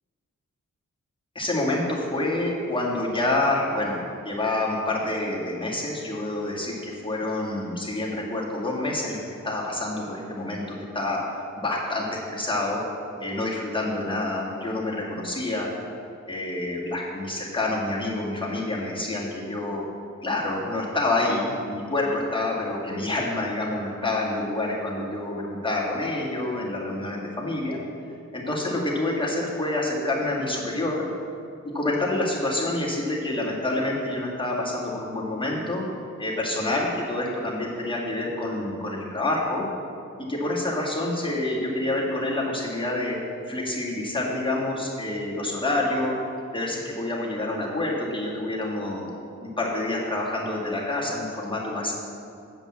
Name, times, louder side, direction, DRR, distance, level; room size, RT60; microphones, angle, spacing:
voice 1, 1.4-4.0 4.2-11.2 11.6-12.8 13.2-15.7 16.3-19.8 20.2-27.8 28.3-31.0 31.6-35.8 36.2-39.7 40.2-43.2 43.5-46.2 46.5-49.0 49.4-52.1, left 2 dB, 15° left, -5 dB, 1.9 m, -27 dB
7.6 x 5.2 x 7.3 m, 2.5 s
wide cardioid pair, 85°, 32 cm